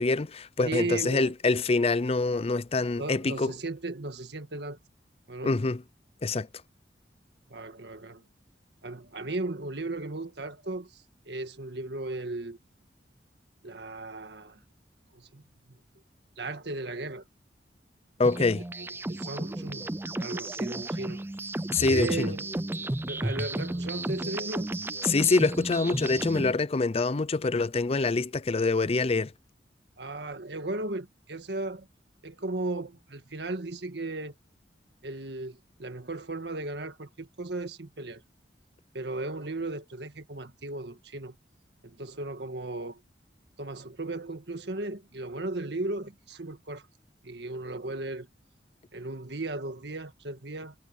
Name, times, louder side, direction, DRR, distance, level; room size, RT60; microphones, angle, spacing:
voice 1, 0.0-3.5 5.4-5.8 6.2-6.5 18.2-18.6 21.7-22.3 25.0-29.3, left 3 dB, 35° left, 0.5 m, -25 dB
voice 2, 0.6-1.3 3.0-4.8 5.3-5.6 7.5-8.2 8.8-12.6 13.6-14.6 15.1-15.8 16.4-17.2 18.5-19.9 20.2-21.2 21.9-22.5 23.1-24.7 30.0-31.9 32.2-34.3 35.0-38.2 38.9-41.3 41.8-43.0 43.6-46.9 47.2-48.3 48.9-50.7, right 2 dB, 70° right, 1.7 m, -36 dB
sound 1, 18.2-26.5, right 1 dB, 15° right, 0.5 m, -33 dB
head